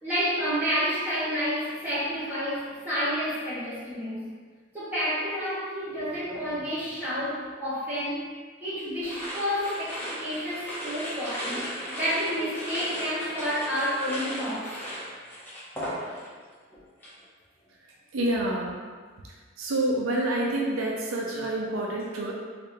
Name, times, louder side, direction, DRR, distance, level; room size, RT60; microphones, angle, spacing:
voice 1, 0.0-4.3 4.7-8.3 8.6-14.7, equal, 10° right, -12 dB, 1.2 m, -30 dB
sound 1, 9.0-16.4 16.7-17.2, equal, 10° left, 0.8 m, -36 dB
voice 2, 17.8-18.7 19.2-19.3 19.6-22.4, right 1 dB, 80° right, -2 dB, 0.5 m, -28 dB
3.3 x 3.2 x 2.7 m, 1.5 s
head